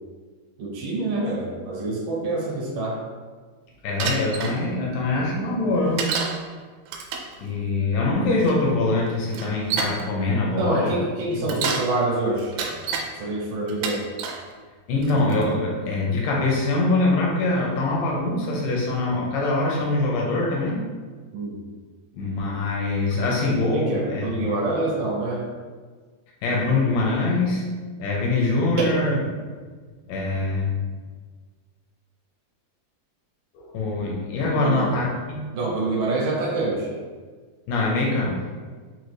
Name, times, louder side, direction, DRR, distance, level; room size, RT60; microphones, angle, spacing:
voice 1, 0.6-3.0 10.6-14.0 21.3-21.6 23.1-23.2 23.7-25.4 29.1-29.2 34.5-34.9 35.5-36.9, right 2 dB, 70° right, -5 dB, 2.3 m, -26 dB
voice 2, 3.8-6.1 7.4-10.9 11.3-11.5 14.9-20.8 22.1-24.3 26.4-27.6 28.0-29.2 30.1-30.8 33.5-35.5 37.7-38.4, left 2 dB, 80° left, -2 dB, 1.9 m, -23 dB
Bicycle, 4.0-4.6 6.0-6.4 6.9-7.3 8.4-8.5 9.3-10.0 11.3-11.9 12.4-13.1 13.7-14.4 15.0-15.4, right 5 dB, 90° right, 2.6 m, -28 dB
6.3 x 2.2 x 3.1 m, 1.5 s
omnidirectional pair, 4.6 m